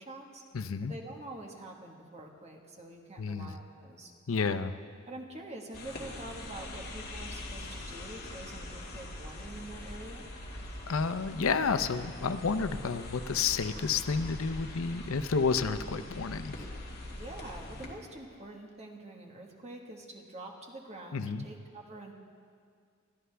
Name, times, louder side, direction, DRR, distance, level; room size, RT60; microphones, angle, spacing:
voice 1, 0.0-0.4 0.9-4.1 5.1-10.3 17.1-22.1, right 2 dB, 30° right, 1 dB, 1.5 m, -46 dB
voice 2, 0.5-0.9 3.2-3.5 4.3-4.8 10.9-16.7 21.1-21.5, left 5 dB, 85° left, 11 dB, 0.6 m, -30 dB
sound 1, 5.7-17.9, left 1 dB, 50° left, 2.2 m, -43 dB
22.0 x 13.5 x 3.4 m, 2.1 s
head